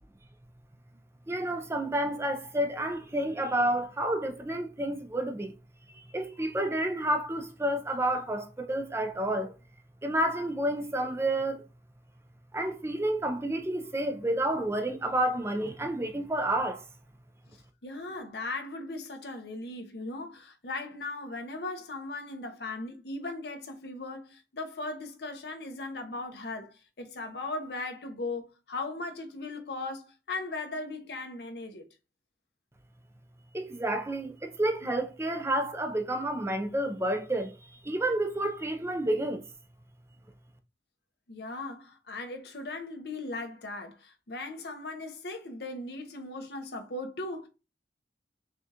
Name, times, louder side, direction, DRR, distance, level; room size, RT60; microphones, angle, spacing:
voice 1, 1.3-5.5 6.1-9.5 10.0-11.6 12.5-16.8 33.5-37.5 37.8-39.4, right 1 dB, 15° right, 0.5 m, -30 dB
voice 2, 17.8-31.9 41.3-47.5, left 2 dB, 60° left, 0.8 m, -38 dB
6.1 x 2.4 x 2.8 m
head